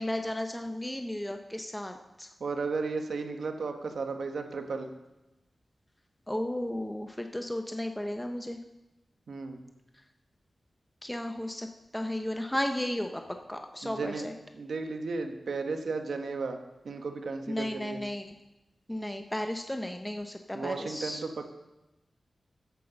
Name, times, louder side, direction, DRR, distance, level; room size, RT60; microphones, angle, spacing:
voice 1, 0.0-2.3 6.3-8.6 11.0-11.7 11.9-13.2 13.5-14.3 17.5-18.3 18.9-21.2, left 1 dB, 10° left, 5 dB, 0.6 m, -34 dB
voice 2, 2.4-4.9 9.3-9.6 13.8-14.3 14.5-16.6 16.8-18.0 20.5-21.4, right 4 dB, 80° right, 5 dB, 1.1 m, -34 dB
8.4 x 7.9 x 7.0 m, 0.99 s
wide cardioid pair, 115°, 0 cm